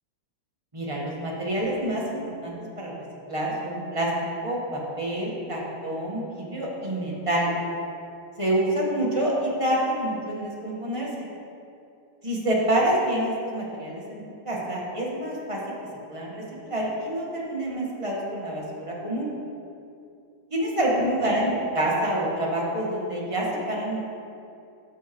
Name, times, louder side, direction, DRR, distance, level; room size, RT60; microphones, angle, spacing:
voice 1, 0.7-2.9 3.3-4.1 4.4-7.5 8.4-11.3 12.2-15.7 16.1-19.3 20.5-24.0, right 1 dB, 20° right, -4 dB, 1.0 m, -27 dB
12.5 x 5.5 x 3.0 m, 2.5 s
omnidirectional pair, 2.3 m